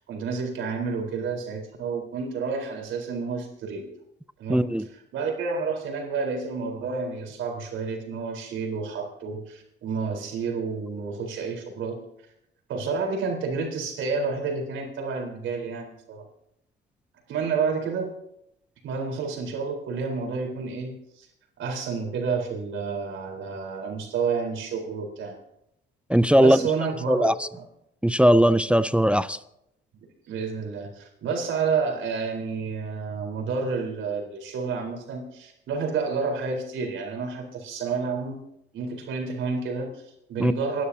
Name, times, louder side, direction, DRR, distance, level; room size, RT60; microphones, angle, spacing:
voice 1, 0.1-3.9 4.4-4.7 4.9-12.0 12.7-16.3 17.3-18.2 18.8-21.3 21.6-25.3 26.4-27.6 30.3-38.4 38.7-40.8, right 5 dB, 80° right, 4.1 m, -30 dB
voice 2, 4.5-4.9 26.1-26.6 27.1-27.5 28.0-29.4 40.4-40.5, equal, 5° right, 0.5 m, -19 dB
27.5 x 11.5 x 2.8 m
cardioid pair, 90°, 20 cm